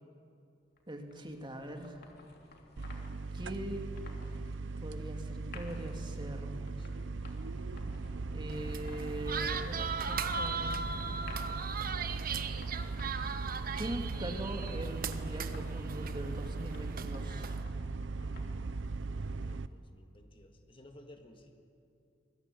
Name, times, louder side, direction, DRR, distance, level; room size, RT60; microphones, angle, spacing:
sound 1, 0.8-19.8, left 2 dB, 55° left, 3.1 m, -56 dB
voice 1, 0.9-2.0 3.3-3.8 4.8-6.7 8.3-10.8 13.8-17.6, right 1 dB, 25° right, 4 dB, 2.3 m, -41 dB
sound 2, 2.8-19.7, right 3 dB, 75° right, 0.7 m, -39 dB
sound 3, 8.5-17.6, right 5 dB, 50° right, 1.1 m, -39 dB
voice 2, 19.4-21.6, left 1 dB, 30° left, 4 dB, 1.8 m, -56 dB
24.0 x 21.5 x 9.1 m, 2.6 s
head